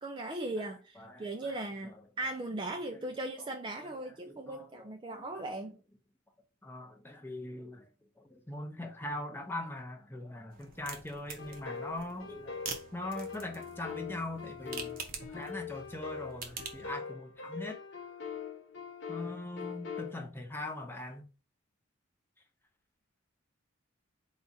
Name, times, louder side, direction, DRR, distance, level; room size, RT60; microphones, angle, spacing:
voice 1, 0.0-5.8, right 2 dB, 25° right, 0.3 m, -38 dB
voice 2, 1.0-1.5 1.9-2.0 2.9-3.1 3.4-3.5 3.8-5.3 6.6-7.9 8.2-12.6 12.9-15.0 15.3-17.8 19.1-21.2, left 2 dB, 10° left, 0.6 m, -41 dB
sound 1, 10.5-16.9, right 5 dB, 45° right, 0.7 m, -46 dB
sound 2, 11.4-20.1, left 6 dB, 60° left, 0.8 m, -43 dB
4.1 x 2.4 x 4.1 m
head